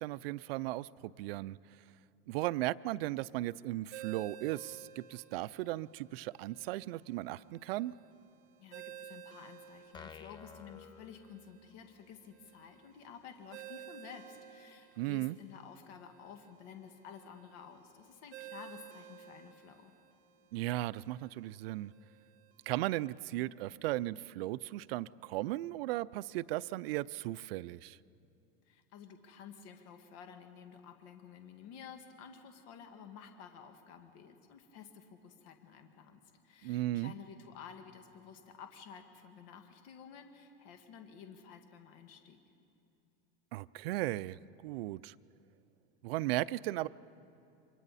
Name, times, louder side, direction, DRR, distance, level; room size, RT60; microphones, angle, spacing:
voice 1, 0.0-1.6 2.3-7.9 15.0-15.4 20.5-21.9 22.7-28.0 36.6-37.1 43.5-45.1 46.0-46.9, right 16 dB, 85° right, 16 dB, 0.5 m, -36 dB
Ringtone, 3.9-23.1, right 10 dB, 60° right, 1.5 m, -54 dB
voice 2, 8.6-19.9 28.7-42.4, left 7 dB, 55° left, 5 dB, 1.8 m, -52 dB
sound 1, 9.9-11.9, left 6 dB, 15° left, 0.5 m, -53 dB
28.5 x 23.5 x 4.1 m, 2.6 s
supercardioid pair, 145°, 29 cm